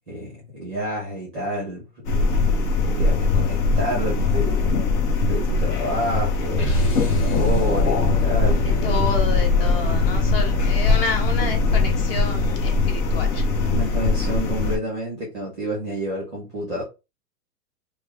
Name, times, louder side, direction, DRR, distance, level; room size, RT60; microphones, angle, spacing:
voice 1, 0.1-1.8 2.1-2.3 2.8-5.0 5.3-9.0 13.7-16.8, equal, ahead, 0.5 m, -29 dB
sound 1, 2.1-14.8, left 3 dB, 85° left, 1.0 m, -21 dB
sound 2, 6.5-12.7, left 1 dB, 60° left, 2.0 m, -27 dB
voice 2, 8.6-13.4, left 4 dB, 35° left, 0.8 m, -29 dB
3.0 x 2.3 x 3.5 m
hypercardioid pair, 165°, 48 cm